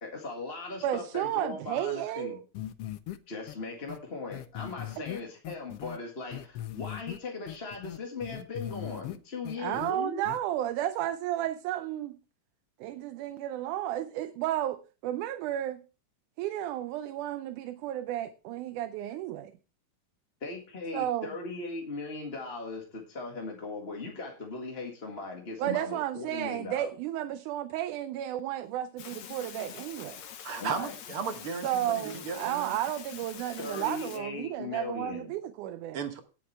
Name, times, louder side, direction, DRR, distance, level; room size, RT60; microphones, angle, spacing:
voice 1, 0.0-2.4 3.3-10.2 20.4-26.9 30.6-31.0 33.6-35.3, left 3 dB, 25° left, 1.6 m, -39 dB
voice 2, 0.8-2.4 9.6-12.2 12.8-15.8 16.4-19.5 20.9-21.3 25.6-30.2 31.6-36.0, right 12 dB, 85° right, 2.2 m, -33 dB
sound 1, 2.5-3.2 3.5-3.6 3.9-4.0 4.3-6.0 6.3-7.2 7.5-9.2 9.4-9.9 10.2-10.4, left 13 dB, 85° left, 1.3 m, -39 dB
sound 2, 29.0-34.2, left 9 dB, 70° left, 2.4 m, -45 dB
voice 3, 30.4-32.7 35.9-36.2, right 6 dB, 60° right, 1.6 m, -35 dB
17.5 x 7.3 x 3.3 m
omnidirectional pair, 3.5 m